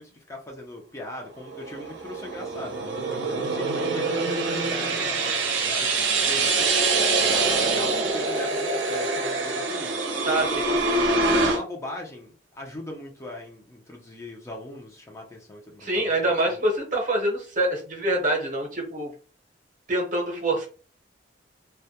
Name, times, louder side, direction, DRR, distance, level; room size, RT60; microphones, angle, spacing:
voice 1, 0.0-6.9 7.2-10.0 10.5-16.6, left 1 dB, 15° left, 0 dB, 0.4 m, -40 dB
sound 1, 1.5-11.6, right 3 dB, 85° right, 0.6 m, -25 dB
voice 2, 10.3-10.7 15.8-19.1 19.9-20.7, right 1 dB, 45° right, 1 dB, 0.7 m, -25 dB
2.2 x 2.0 x 2.7 m, 0.39 s
head